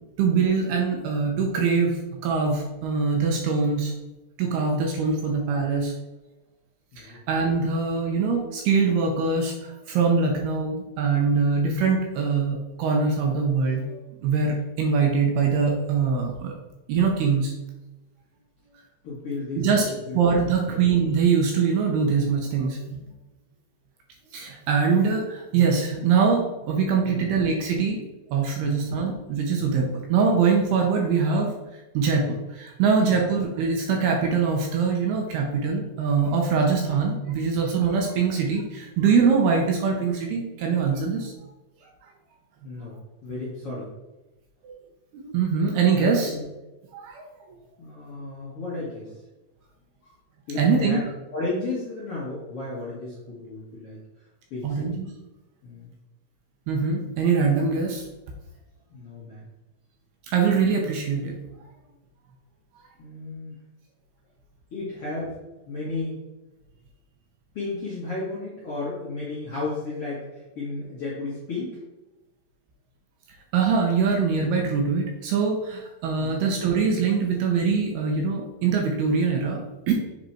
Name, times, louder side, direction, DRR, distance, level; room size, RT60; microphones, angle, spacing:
voice 1, 0.2-2.0 2.2-3.9 4.4-5.9 7.0-13.8 14.2-16.5 16.9-17.5 19.6-19.9 20.1-23.0 24.3-28.0 28.3-31.5 31.9-41.3 44.6-44.7 45.1-46.3 46.9-47.2 50.6-51.0 54.6-55.1 56.7-58.1 60.3-61.4 73.5-79.9, right 5 dB, 75° right, 1 dB, 2.5 m, -23 dB
voice 2, 6.9-7.2 19.0-20.2 20.6-20.8 23.1-23.2 27.1-27.3 28.6-28.8 29.6-29.7 33.1-33.2 42.6-43.9 45.9-46.4 47.8-49.1 50.0-50.1 50.5-51.0 51.3-54.0 54.5-55.0 55.6-55.9 58.9-59.5 63.0-63.6 64.7-65.3 65.7-66.2 67.5-71.8, left 3 dB, 55° left, -8 dB, 1.6 m, -34 dB
7.8 x 4.1 x 4.4 m, 1.0 s
omnidirectional pair, 5.1 m